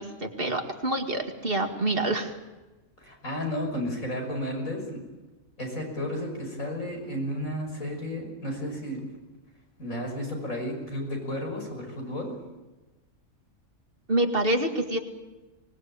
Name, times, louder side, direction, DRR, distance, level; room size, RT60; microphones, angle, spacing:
voice 1, 0.0-2.4 14.1-15.0, right 1 dB, 45° right, 4 dB, 2.3 m, -27 dB
voice 2, 3.0-5.0 5.6-9.1 9.8-12.4, left 1 dB, 80° left, 1 dB, 6.5 m, -33 dB
25.0 x 20.0 x 8.9 m, 1.1 s
omnidirectional pair, 1.4 m